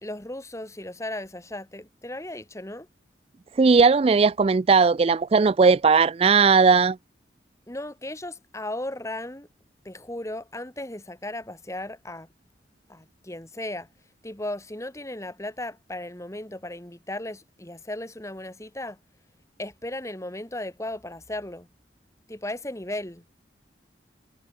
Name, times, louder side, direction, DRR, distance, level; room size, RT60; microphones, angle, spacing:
voice 1, 0.0-2.9 7.7-9.5 9.9-12.3 12.9-13.9 14.2-19.0 19.6-21.7 22.3-23.2, left 1 dB, 15° left, 1.9 m, -36 dB
voice 2, 3.6-7.0, right 5 dB, 30° right, 0.3 m, -18 dB
head